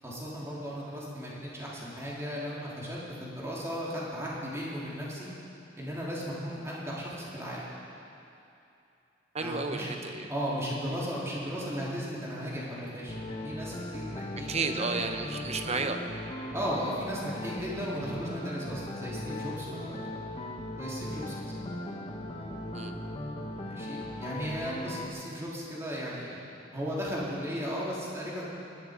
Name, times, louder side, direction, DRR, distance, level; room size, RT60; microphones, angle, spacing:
voice 1, 0.0-5.3 5.8-7.7 9.4-9.9 10.3-13.1 13.4-14.9 16.5-20.1 20.8-21.5 23.6-28.5, equal, 15° right, -6 dB, 3.2 m, -36 dB
voice 2, 9.3-10.3 14.5-16.0 22.7-22.9, right 4 dB, 35° right, 6 dB, 0.9 m, -32 dB
sound 1, 13.1-25.1, left 1 dB, 30° left, 1.1 m, -38 dB
19.5 x 12.0 x 5.1 m, 2.7 s
head